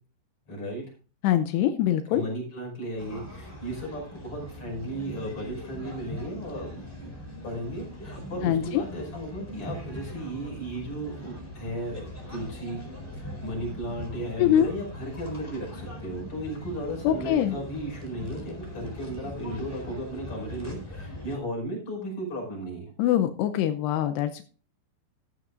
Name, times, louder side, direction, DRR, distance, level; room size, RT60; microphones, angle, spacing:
voice 1, 0.5-0.8 2.1-7.1 7.4-12.8 13.4-22.9, right 1 dB, 30° left, -1 dB, 6.0 m, -35 dB
voice 2, 1.2-2.2 8.4-8.8 14.4-14.7 17.0-17.6 23.0-24.4, left 11 dB, 80° left, 8 dB, 2.4 m, -23 dB
trav place femme, 3.0-21.3, equal, 5° left, 3.1 m, -41 dB
13.5 x 12.0 x 2.6 m, 0.36 s
omnidirectional pair, 5.6 m